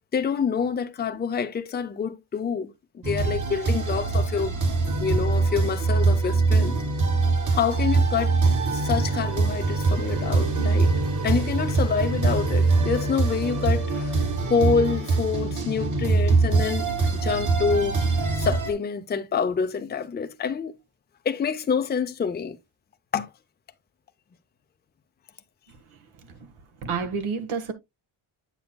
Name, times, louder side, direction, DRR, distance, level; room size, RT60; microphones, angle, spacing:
voice 1, 0.1-4.6 5.0-6.8 7.5-8.4 8.7-10.9 11.2-18.0 18.4-20.7 21.2-22.6 23.1-23.3, left 6 dB, 20° left, 0.5 m, -27 dB
sound 1, 3.0-18.7, right 3 dB, 40° right, 1.5 m, -23 dB
sound 2, 7.1-15.7, right 2 dB, 60° right, 3.0 m, -39 dB
voice 2, 26.8-27.7, right 5 dB, 80° right, 1.4 m, -29 dB
9.0 x 6.9 x 2.2 m
wide cardioid pair, 180°, 48 cm